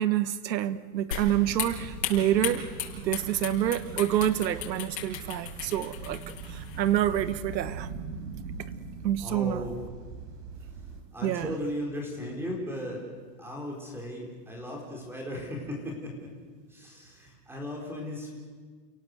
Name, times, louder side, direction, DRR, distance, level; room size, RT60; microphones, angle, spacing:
voice 1, 0.0-2.6 3.0-7.9 9.0-9.6 11.2-11.5, right 11 dB, 90° right, 14 dB, 1.4 m, -27 dB
sound 1, 1.1-7.7, left 9 dB, 70° left, 7.1 m, -37 dB
sound 2, 1.1-11.0, right 5 dB, 65° right, 4.8 m, -41 dB
voice 2, 9.2-9.8 11.1-13.1 13.4-16.3 16.7-18.3, equal, 5° right, 0 dB, 4.3 m, -36 dB
29.5 x 17.5 x 8.0 m, 1.5 s
supercardioid pair, 165°, 50 cm